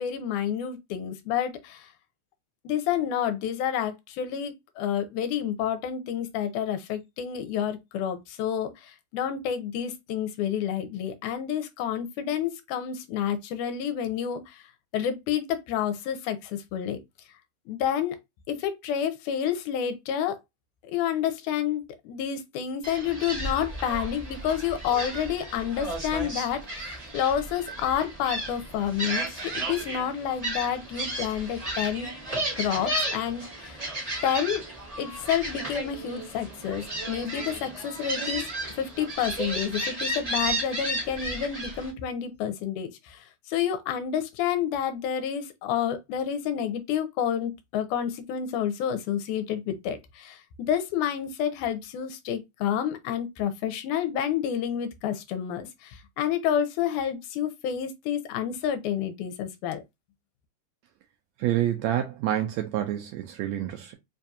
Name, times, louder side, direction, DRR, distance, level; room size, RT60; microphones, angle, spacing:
voice 1, 0.0-1.9 2.7-14.6 14.9-17.0 17.7-18.2 18.5-20.4 20.9-32.1 32.6-33.8 34.2-34.6 35.0-38.5 38.7-59.8, left 9 dB, 85° left, 2.1 m, -29 dB
Gull seagull, 22.8-41.9, right 1 dB, 30° right, 0.6 m, -33 dB
voice 2, 61.4-64.0, right 12 dB, 80° right, 1.6 m, -28 dB
4.9 x 2.3 x 2.7 m
omnidirectional pair, 3.6 m